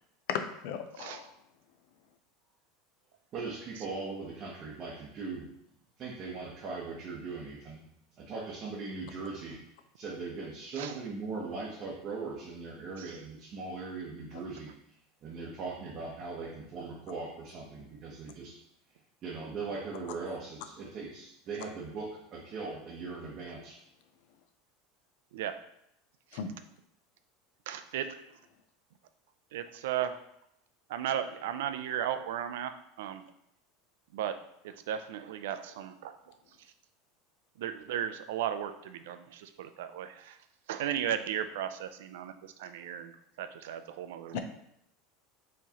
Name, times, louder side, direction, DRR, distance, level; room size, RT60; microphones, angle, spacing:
voice 1, 0.3-1.3 26.3-26.5 44.3-44.4, left 7 dB, 65° left, 7 dB, 0.5 m, -35 dB
voice 2, 3.3-5.5 6.0-7.8 8.2-9.6 10.0-14.7 15.2-18.6 19.2-23.8, right 4 dB, 35° right, -4 dB, 0.8 m, -39 dB
voice 3, 27.7-28.1 29.5-30.2 30.9-32.7 33.0-33.2 34.1-36.2 37.6-40.4 40.7-43.1 43.4-44.4, right 10 dB, 80° right, 9 dB, 0.3 m, -35 dB
4.6 x 3.1 x 2.8 m, 0.76 s
supercardioid pair, 145°, 0 cm